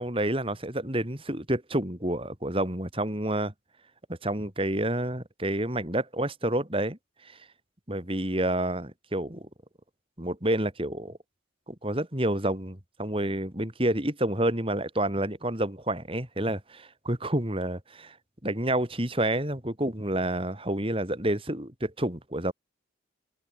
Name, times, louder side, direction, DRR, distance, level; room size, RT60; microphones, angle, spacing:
voice 1, 0.0-3.5 4.1-7.4 7.9-9.5 10.2-11.2 11.7-18.2 18.4-22.5, right 1 dB, 30° right, 3.5 m, -29 dB
head